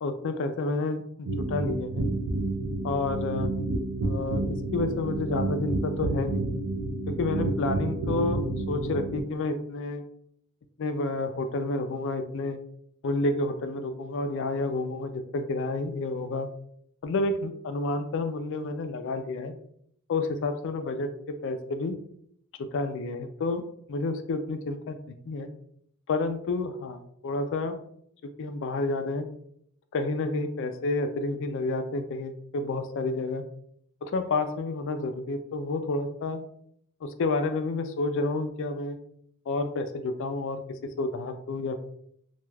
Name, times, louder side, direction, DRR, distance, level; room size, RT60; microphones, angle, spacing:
voice 1, 0.0-2.1 2.8-3.5 4.0-6.4 7.1-10.0 10.8-12.6 13.0-16.5 17.0-19.5 20.1-21.9 22.6-23.6 23.9-25.5 26.1-27.8 28.4-29.3 29.9-33.4 34.0-36.4 37.0-39.0 39.5-41.8, left 3 dB, 55° left, 8 dB, 0.3 m, -30 dB
sound 1, 1.3-9.2, right 2 dB, 90° right, 0.4 m, -30 dB
2.3 x 2.2 x 3.2 m, 0.68 s
head